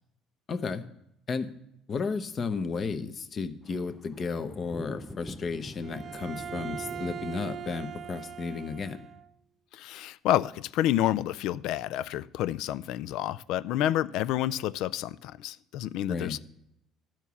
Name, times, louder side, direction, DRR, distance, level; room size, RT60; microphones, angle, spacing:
voice 1, 0.5-0.8 1.3-1.5 1.9-9.0 16.1-16.4, left 4 dB, 40° left, 9 dB, 0.8 m, -33 dB
sound 1, 3.6-8.9, left 1 dB, 5° left, 0.6 m, -45 dB
Bowed string instrument, 5.8-9.3, right 9 dB, 40° right, 0.5 m, -40 dB
voice 2, 9.7-16.4, left 12 dB, 75° left, 17 dB, 0.3 m, -29 dB
12.5 x 4.5 x 7.0 m, 0.79 s
supercardioid pair, 85°, 0 cm